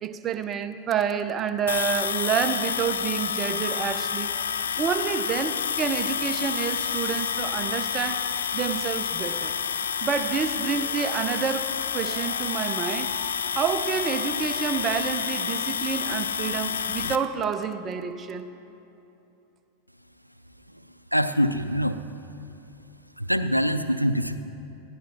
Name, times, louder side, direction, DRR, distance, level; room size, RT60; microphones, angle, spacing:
voice 1, 0.0-4.3 4.8-8.3 8.5-9.5 10.0-13.1 13.5-18.4, right 7 dB, 25° right, 0.7 m, -28 dB
sound 1, 1.7-17.2, left 7 dB, 65° left, 0.5 m, -29 dB
Wind instrument woodwind instrument, 10.6-15.7, left 2 dB, 35° left, 2.1 m, -44 dB
voice 2, 21.1-22.0 23.2-24.4, equal, 90° right, 0.5 m, -24 dB
19.5 x 15.0 x 3.0 m
figure-of-eight pair, 90°, 0 cm